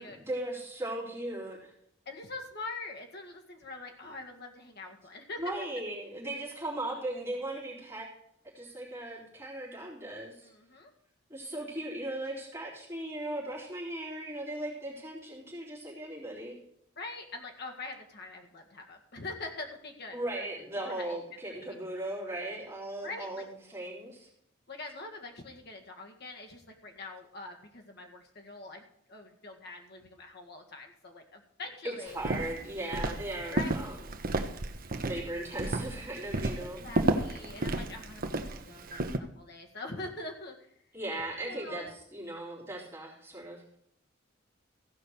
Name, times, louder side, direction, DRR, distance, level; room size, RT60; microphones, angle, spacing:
voice 1, 0.0-1.7 5.4-8.1 8.5-10.5 11.3-16.6 20.1-23.4 23.7-24.3 31.8-34.0 35.0-36.8 40.9-43.8, right 1 dB, 15° right, -8 dB, 4.0 m, -38 dB
voice 2, 2.1-5.4 10.4-10.9 17.0-20.5 20.8-21.2 21.5-21.8 23.0-23.4 24.7-32.3 33.5-33.9 36.6-40.7 41.3-41.9, left 3 dB, 55° left, 2 dB, 1.9 m, -44 dB
Walk footsteps, 32.1-39.2, right 2 dB, 50° right, 0.9 m, -32 dB
15.5 x 5.6 x 6.6 m, 0.74 s
head